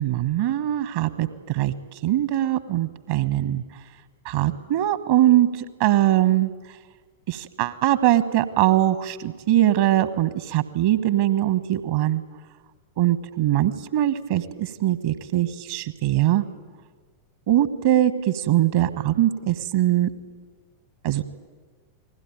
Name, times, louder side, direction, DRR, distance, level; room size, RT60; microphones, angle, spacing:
voice 1, 0.0-1.7 2.0-3.6 4.2-6.5 7.3-12.2 13.0-16.4 17.5-20.1 21.0-21.2, right 13 dB, 50° right, 14 dB, 1.2 m, -22 dB
29.5 x 20.5 x 9.4 m, 1.5 s
figure-of-eight pair, 90°, 0 cm